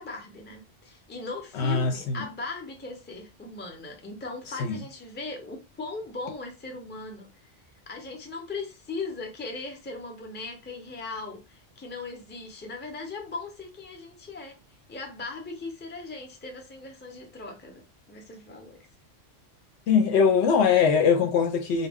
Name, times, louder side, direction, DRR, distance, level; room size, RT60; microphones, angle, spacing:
voice 1, 0.0-7.3 7.9-14.6 14.9-18.8, left 3 dB, 15° left, 0.5 m, -38 dB
voice 2, 1.5-2.2 4.6-4.8 19.9-21.9, left 6 dB, 70° left, 0.8 m, -22 dB
2.2 x 2.2 x 3.4 m
omnidirectional pair, 1.2 m